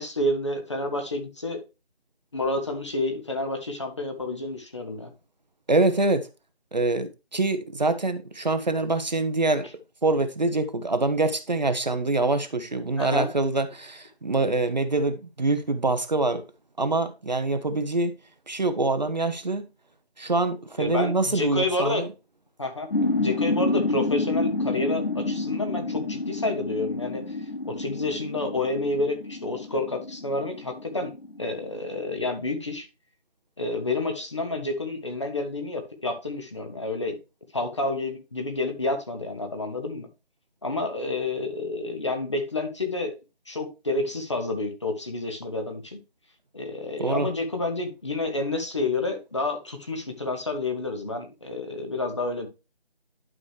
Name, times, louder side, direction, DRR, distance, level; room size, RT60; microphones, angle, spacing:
voice 1, 0.0-1.6 2.3-5.1 13.0-13.3 20.8-22.1 22.6-22.9 23.1-32.9 33.6-37.2 37.5-40.1 40.6-43.2 43.5-46.0 46.5-52.5, left 2 dB, 30° left, 1.0 m, -29 dB
voice 2, 5.7-6.3 6.7-9.7 10.0-16.4 16.8-18.1 18.5-19.7 20.2-22.1 47.0-47.3, right 2 dB, 45° right, 0.8 m, -25 dB
sound 1, 22.9-32.1, left 2 dB, 60° left, 2.8 m, -29 dB
11.0 x 4.8 x 3.2 m
figure-of-eight pair, 165°, 31 cm